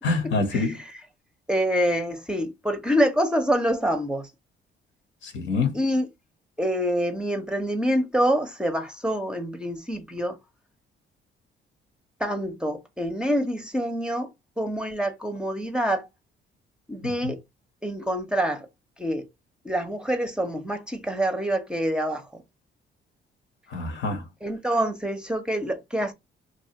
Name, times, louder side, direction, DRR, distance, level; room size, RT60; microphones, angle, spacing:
voice 1, 0.0-0.8 5.2-5.8 17.0-17.3 23.7-24.2, left 3 dB, 75° left, 1.0 m, -26 dB
voice 2, 1.5-4.3 5.7-6.1 6.6-10.4 12.2-14.3 14.6-16.1 16.9-17.4 17.8-18.7 19.0-19.3 19.6-22.4 24.4-26.1, equal, 5° right, 0.6 m, -26 dB
2.7 x 2.3 x 2.8 m
cardioid pair, 90°, 20 cm